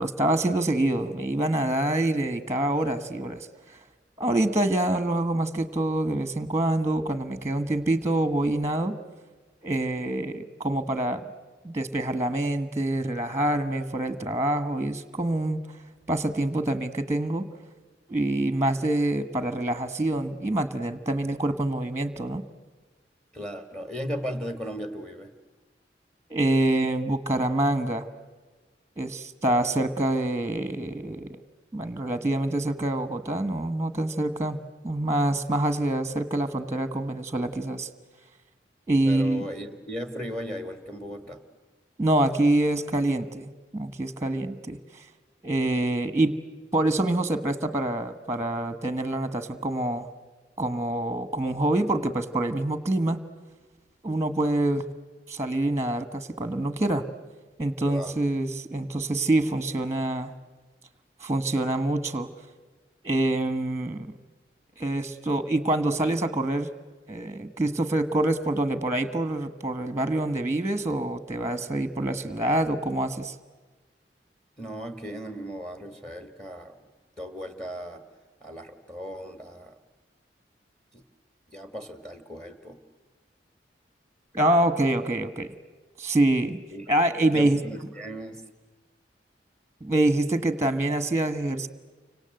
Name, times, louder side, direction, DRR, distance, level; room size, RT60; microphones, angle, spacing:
voice 1, 0.0-3.5 4.2-9.0 9.6-11.2 11.6-15.6 16.1-17.5 18.1-22.4 26.3-28.0 29.0-31.4 31.7-37.9 38.9-39.4 42.0-44.8 45.4-46.4 46.7-50.1 50.6-53.2 54.0-54.8 55.3-57.0 57.6-60.3 61.2-62.3 63.0-64.1 64.8-66.7 67.1-73.3 84.3-85.5 86.0-86.6 86.9-87.6 89.8-91.7, right 1 dB, 15° right, 11 dB, 1.3 m, -26 dB
voice 2, 23.3-25.3 39.0-41.4 57.9-58.2 74.6-76.8 77.2-78.0 78.4-79.8 80.9-81.0 81.5-82.8 86.7-86.9 87.3-88.4, equal, 5° left, 9 dB, 1.7 m, -36 dB
30.0 x 25.5 x 7.8 m, 1.3 s
head